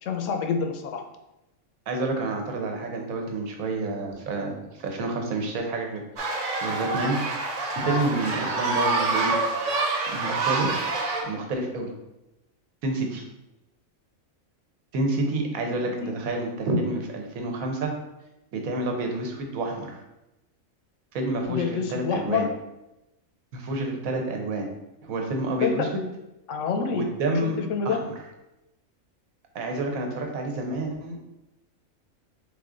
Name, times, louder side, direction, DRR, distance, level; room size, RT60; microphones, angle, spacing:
voice 1, 0.0-1.0 16.0-16.1 21.5-22.5 25.6-25.9 26.5-27.0 27.6-28.0, left 6 dB, 70° left, 5 dB, 0.9 m, -27 dB
voice 2, 1.9-7.2 7.8-9.4 10.1-10.8 11.2-11.9 12.8-13.2 14.9-17.9 18.5-20.0 21.1-22.5 23.5-24.7 25.0-26.0 26.9-27.6 27.8-28.1 29.5-31.2, right 2 dB, 85° right, 2 dB, 1.2 m, -29 dB
sound 1, 6.2-11.2, right 3 dB, 65° right, 1.1 m, -26 dB
3.8 x 3.6 x 3.7 m, 0.94 s
omnidirectional pair, 1.4 m